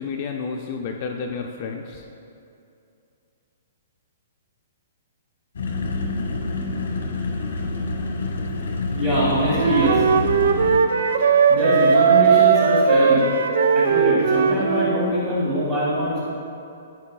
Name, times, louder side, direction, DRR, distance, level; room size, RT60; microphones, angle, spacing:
voice 1, 0.0-2.1, left 5 dB, 30° left, 2 dB, 0.4 m, -30 dB
sound 1, 5.6-10.8, left 3 dB, 85° left, 1.0 m, -27 dB
voice 2, 8.9-10.0 11.5-13.2 13.7-16.2, equal, 20° right, -9 dB, 1.6 m, -22 dB
Wind instrument woodwind instrument, 9.6-14.9, right 6 dB, 65° right, 0.5 m, -18 dB
14.0 x 5.3 x 2.3 m, 2.6 s
hypercardioid pair, 175°, 0 cm